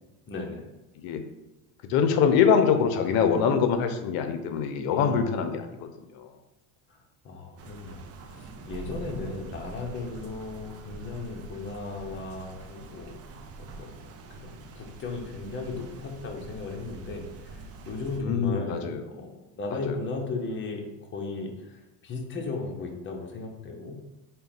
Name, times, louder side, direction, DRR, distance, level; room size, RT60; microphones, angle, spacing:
voice 1, 0.3-0.6 4.9-5.4 6.9-7.0 7.2-13.1 13.6-14.0 14.3-18.9 19.1-20.8 21.1-24.0, left 3 dB, 30° left, 1 dB, 0.8 m, -36 dB
voice 2, 1.8-6.3 18.2-19.0 19.8-20.0, left 7 dB, 60° left, 8 dB, 0.7 m, -24 dB
sound 1, 7.6-18.2, right 3 dB, 35° right, 0.5 m, -44 dB
3.9 x 2.3 x 4.0 m, 1.0 s
supercardioid pair, 105°, 41 cm